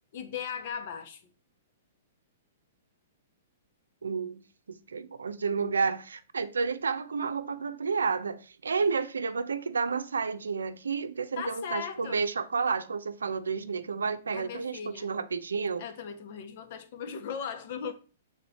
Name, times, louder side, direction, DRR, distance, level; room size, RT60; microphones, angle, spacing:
voice 1, 0.1-1.2 11.4-12.2 14.3-15.1 15.8-17.9, left 7 dB, 55° left, 1.0 m, -38 dB
voice 2, 4.0-4.4 4.7-15.8, right 5 dB, 90° right, 0.5 m, -31 dB
6.2 x 3.7 x 4.1 m
hypercardioid pair, 125°, 0 cm